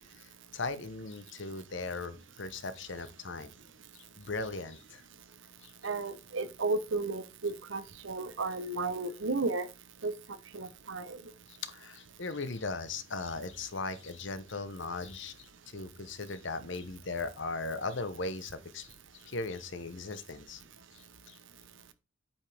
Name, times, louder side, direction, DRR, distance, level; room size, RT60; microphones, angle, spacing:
voice 1, 0.2-3.5 3.9-5.0 5.6-5.7 11.5-20.6 20.9-21.4, left 3 dB, 60° left, 1.0 m, -38 dB
voice 2, 5.8-9.7 10.0-10.1 10.5-11.2, right 3 dB, 65° right, 0.9 m, -33 dB
8.5 x 5.4 x 3.5 m
head